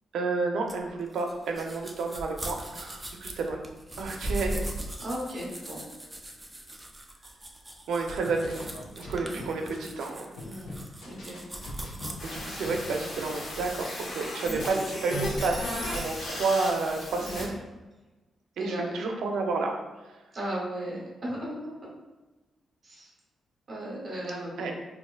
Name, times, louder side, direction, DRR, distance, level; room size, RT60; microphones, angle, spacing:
voice 1, 0.1-3.6 4.0-4.6 7.9-8.7 8.9-10.4 12.2-17.6 18.6-19.8 24.6-24.7, right 3 dB, 85° right, 2 dB, 0.5 m, -30 dB
sound 1, 0.7-12.1, right 1 dB, 10° right, 0.3 m, -39 dB
voice 2, 5.0-5.8 9.3-9.7 10.4-10.7 11.0-11.4 17.2-17.6 18.6-19.0 20.3-21.9 22.8-23.1 23.7-24.8, equal, 40° right, -4 dB, 0.9 m, -36 dB
sound 2, 8.1-10.0 10.4-12.8, left 1 dB, 90° left, 0.8 m, -42 dB
sound 3, 12.2-17.4, left 1 dB, 50° left, 0.8 m, -35 dB
4.3 x 2.6 x 2.3 m, 1.2 s
wide cardioid pair, 165°, 0 cm